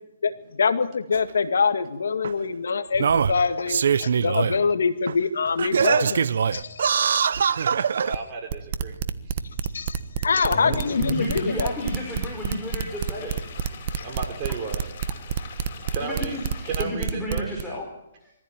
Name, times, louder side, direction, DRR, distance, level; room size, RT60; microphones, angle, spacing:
voice 1, 0.6-6.8 7.5-7.6 9.7-11.7 14.0-14.1, left 5 dB, 75° left, 9 dB, 2.0 m, -24 dB
Singing, 1.1-1.2 2.2-2.3 2.9-4.6 5.1-5.2 5.6-8.2 8.9-9.0, right 7 dB, 70° right, 0.8 m, -22 dB
voice 2, 8.0-8.9 14.0-14.8 15.9-16.4 16.6-17.5, right 5 dB, 35° right, 2 dB, 5.4 m, -33 dB
sound 1, 8.5-17.6, right 8 dB, 50° right, 1.3 m, -28 dB
voice 3, 10.5-13.4 13.7-13.9 16.0-17.8 18.2-18.3, left 1 dB, ahead, -4 dB, 5.2 m, -32 dB
sound 2, 10.8-16.8, left 6 dB, 50° left, 7.8 m, -43 dB
23.5 x 15.0 x 9.1 m, 0.86 s
hypercardioid pair, 140°, 0 cm